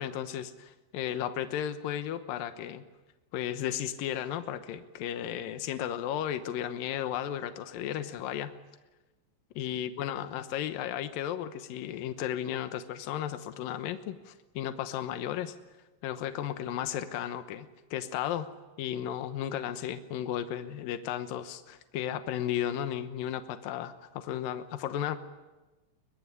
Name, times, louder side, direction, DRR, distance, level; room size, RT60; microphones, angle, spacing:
voice 1, 0.0-2.8 3.3-8.5 9.6-15.6 16.0-18.5 18.8-25.2, left 10 dB, 85° left, 9 dB, 2.0 m, -34 dB
23.5 x 21.0 x 9.8 m, 1.2 s
omnidirectional pair, 5.6 m